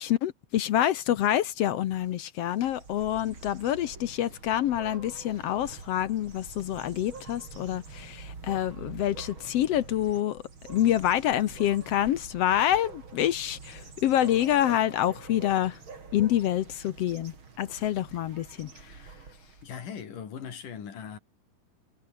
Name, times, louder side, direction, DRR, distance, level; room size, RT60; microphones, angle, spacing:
voice 1, 0.0-10.4 10.7-15.8 16.1-19.0, left 12 dB, 65° left, 1.6 m, -27 dB
sound 1, 2.5-19.8, right 5 dB, 40° right, 4.0 m, -46 dB
voice 2, 19.6-21.2, left 7 dB, 85° left, 4.6 m, -39 dB
omnidirectional pair, 3.6 m